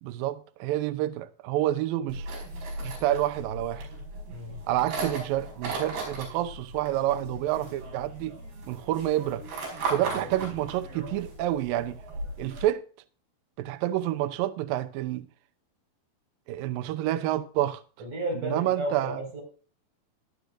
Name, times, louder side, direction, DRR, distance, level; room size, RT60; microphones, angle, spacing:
voice 1, 0.0-2.3 2.8-3.9 4.7-8.4 8.7-9.4 9.9-12.0 12.4-12.9 13.6-15.3 16.5-17.8 18.4-19.2, right 13 dB, 85° right, 2.0 m, -28 dB
sound 1, 2.1-12.7, right 2 dB, 70° right, 7.1 m, -37 dB
voice 2, 18.0-19.4, right 1 dB, 45° right, 6.7 m, -33 dB
18.5 x 11.5 x 2.6 m
omnidirectional pair, 5.0 m